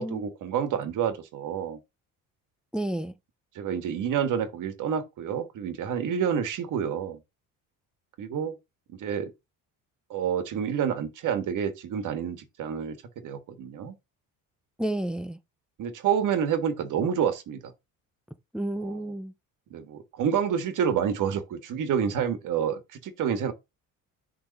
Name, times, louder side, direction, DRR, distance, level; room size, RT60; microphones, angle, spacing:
voice 1, 0.0-1.8 3.6-7.2 8.2-8.6 9.0-9.3 10.1-13.0 13.2-14.0 15.8-17.6 18.8-19.0 19.7-23.5, right 8 dB, 60° right, 1.8 m, -28 dB
voice 2, 2.7-3.1 14.8-15.4 18.5-19.3, right 1 dB, ahead, 0.6 m, -31 dB
6.9 x 3.9 x 6.4 m
cardioid pair, 145°, 35 cm